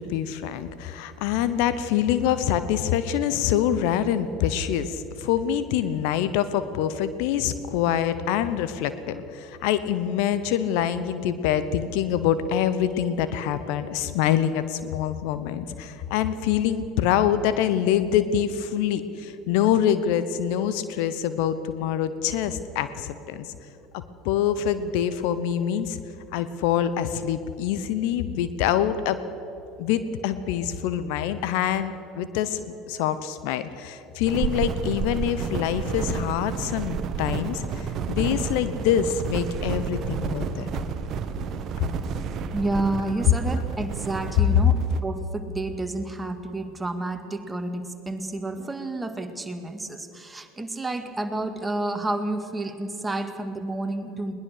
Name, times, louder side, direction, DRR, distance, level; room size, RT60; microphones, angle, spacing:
voice 1, 0.0-23.5 23.9-26.0 26.3-29.2 29.8-32.6 32.9-40.7, left 9 dB, 60° left, 13 dB, 0.9 m, -25 dB
sound 1, 34.3-45.0, right 6 dB, 45° right, 1.4 m, -31 dB
voice 2, 42.5-44.7 45.0-54.3, right 2 dB, 15° right, 6 dB, 2.1 m, -30 dB
21.0 x 19.5 x 6.6 m, 2.9 s
figure-of-eight pair, 70°, 0 cm